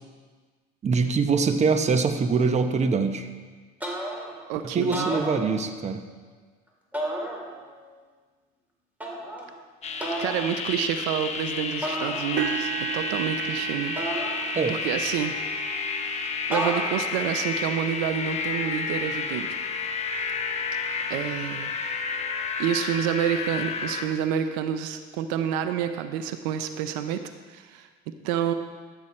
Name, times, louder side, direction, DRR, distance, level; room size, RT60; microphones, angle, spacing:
voice 1, 0.8-3.3 4.6-6.0 14.5-14.8, right 4 dB, 30° right, 8 dB, 1.0 m, -23 dB
sound 1, 3.8-4.4 4.8-5.9 6.9-7.8 9.0-9.5 10.0-10.5 11.8-12.7 14.0-14.9 16.5-17.3, right 1 dB, 5° right, 2.5 m, -32 dB
voice 2, 4.5-5.1 10.2-14.0 14.7-15.3 16.5-19.6 20.7-20.8 21.1-21.8 22.6-27.2 27.5-27.9 28.2-28.5, right 9 dB, 90° right, 9 dB, 0.7 m, -28 dB
sound 2, 9.8-24.1, left 5 dB, 30° left, 1.0 m, -31 dB
sound 3, 12.4-20.4 21.0-21.3 21.7-21.8 23.2-23.3, right 11 dB, 55° right, 0.7 m, -36 dB
13.5 x 8.0 x 4.3 m, 1.4 s
supercardioid pair, 95°, 21 cm